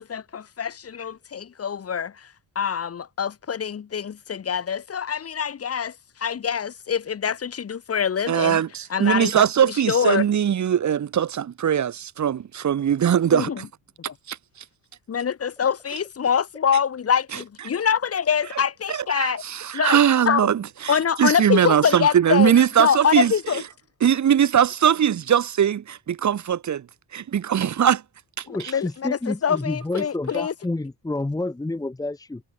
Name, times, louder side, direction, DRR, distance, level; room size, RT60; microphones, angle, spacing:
voice 1, 0.0-2.3 2.6-8.6 8.9-10.2 13.3-13.6 14.1-14.2 15.1-19.4 19.7-20.0 20.3-20.5 20.9-22.5 22.8-23.6 28.5-30.5, left 7 dB, 40° left, 2.0 m, -25 dB
voice 2, 8.3-13.7 14.3-14.4 18.9-23.3 24.0-26.9 27.1-28.0, right 9 dB, 50° right, 2.2 m, -21 dB
voice 3, 28.5-32.4, left 2 dB, 10° left, 1.4 m, -29 dB
cardioid pair, 135°, 36 cm